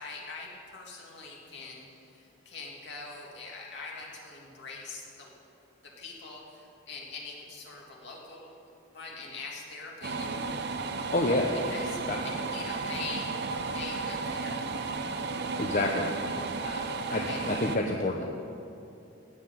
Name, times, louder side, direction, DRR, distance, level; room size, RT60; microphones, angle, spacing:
voice 1, 0.0-5.3 5.8-8.5 8.9-10.4 11.7-13.3 13.7-14.5 16.6-16.9 17.3-17.4, left 4 dB, 60° left, -2 dB, 2.6 m, -43 dB
sound 1, 10.0-17.8, right 3 dB, 55° right, 0.7 m, -33 dB
voice 2, 11.1-11.5 12.1-12.2 15.6-16.1 17.1-18.3, left 2 dB, 40° left, 1 dB, 0.8 m, -28 dB
16.0 x 5.8 x 9.2 m, 2.7 s
head